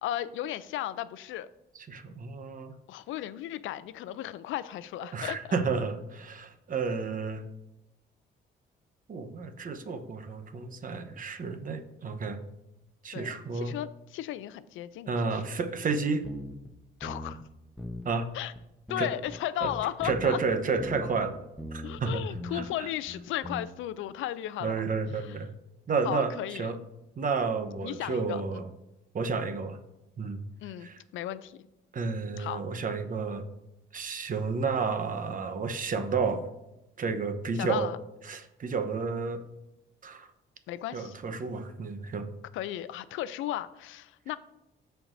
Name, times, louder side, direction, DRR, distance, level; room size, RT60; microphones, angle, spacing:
voice 1, 0.0-1.5 2.9-5.6 13.1-15.4 17.0-17.4 18.3-18.5 18.9-20.4 21.8-24.9 25.1-25.4 26.0-26.7 27.8-28.6 30.6-31.6 32.4-32.6 37.6-38.0 40.7-41.2 42.5-44.4, left 12 dB, 85° left, 15 dB, 0.5 m, -35 dB
voice 2, 1.9-2.7 5.1-7.4 9.1-12.4 13.0-13.7 15.1-16.2 18.0-18.3 19.0-19.1 20.0-21.4 21.7-22.2 22.5-22.6 24.6-25.5 25.9-26.3 26.6-26.8 27.2-28.7 29.1-29.8 30.2-30.4 30.8-30.9 31.9-33.4 33.9-36.4 37.0-37.9 38.3-39.4 40.0-40.3 40.9-42.3, right 4 dB, 45° right, 8 dB, 1.0 m, -31 dB
sound 1, 16.2-16.7 17.0-17.5 17.8-18.1 18.5-18.6 18.9-21.3 21.6-22.1 22.3-22.7 23.1-23.6, left 1 dB, ahead, 0.9 m, -39 dB
13.5 x 4.6 x 2.6 m, 0.93 s
cardioid pair, 90°, 20 cm